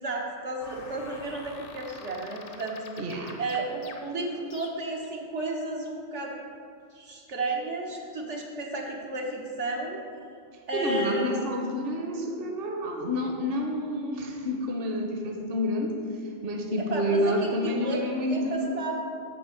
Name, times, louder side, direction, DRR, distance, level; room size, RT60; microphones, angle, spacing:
voice 1, 0.0-2.8 3.4-6.3 6.9-10.0 10.7-11.3 16.8-18.0 18.3-19.0, right 2 dB, 85° right, -1 dB, 1.6 m, -33 dB
sound 1, 0.6-5.1, left 4 dB, 85° left, 1.2 m, -47 dB
voice 2, 3.0-3.4 10.7-15.9 16.4-18.8, left 1 dB, 60° right, 2 dB, 1.0 m, -29 dB
7.7 x 5.2 x 7.0 m, 2.3 s
omnidirectional pair, 1.2 m